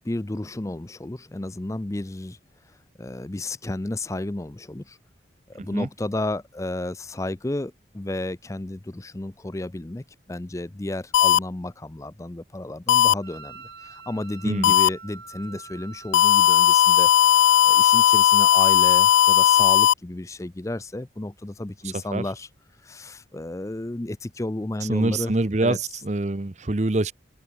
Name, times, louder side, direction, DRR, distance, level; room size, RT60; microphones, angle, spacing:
voice 1, 0.0-5.0 5.5-25.3 25.6-25.8, left 1 dB, 15° left, 0.5 m, -32 dB
voice 2, 5.6-5.9 14.4-14.7 22.1-22.2 24.9-27.1, right 2 dB, 35° right, 0.8 m, -25 dB
sound 1, 11.1-11.4 12.9-13.1 14.6-14.9 16.1-19.9, left 10 dB, 85° left, 0.3 m, -16 dB
Wind instrument woodwind instrument, 13.2-19.8, right 4 dB, 60° right, 4.5 m, -46 dB
open air
head